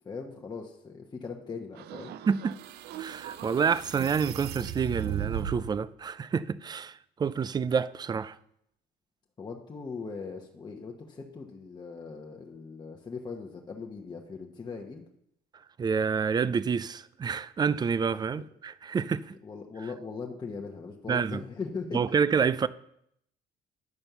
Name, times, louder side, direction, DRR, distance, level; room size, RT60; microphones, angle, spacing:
voice 1, 0.0-2.1 9.4-15.0 18.3-18.4 19.4-22.0, left 4 dB, 25° left, 1.1 m, -39 dB
sound 1, 1.7-5.8, right 11 dB, 75° right, 0.6 m, -37 dB
voice 2, 2.3-2.6 3.0-8.4 15.8-19.3 21.1-21.4 21.9-22.7, right 6 dB, 25° right, 0.4 m, -28 dB
10.5 x 4.3 x 6.8 m
cardioid pair, 110°, 17 cm